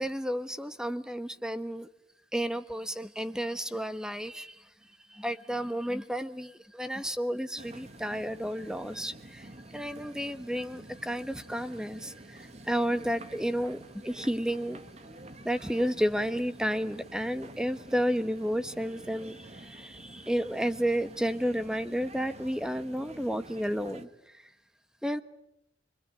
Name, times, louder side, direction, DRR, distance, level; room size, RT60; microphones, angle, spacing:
voice 1, 0.0-1.9 2.3-4.7 5.1-13.8 14.0-14.8 15.4-24.5 25.0-25.2, equal, 5° right, 11 dB, 1.2 m, -32 dB
sound 1, 7.6-24.1, right 1 dB, 35° right, 1.5 m, -48 dB
25.5 x 25.0 x 9.4 m, 0.80 s
head